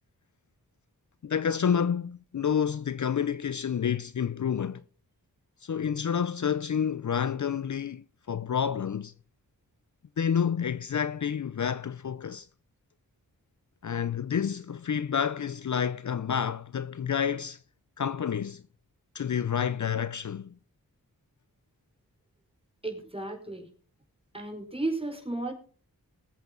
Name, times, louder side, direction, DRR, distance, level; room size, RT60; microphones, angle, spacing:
voice 1, 1.2-4.8 5.6-9.1 10.2-12.5 13.8-17.6 18.0-18.6 19.1-20.5, left 7 dB, 50° left, 0.6 m, -29 dB
voice 2, 22.8-23.7 24.3-25.5, right 2 dB, 15° right, 4.9 m, -33 dB
20.5 x 8.2 x 3.9 m
cardioid pair, 45°, 37 cm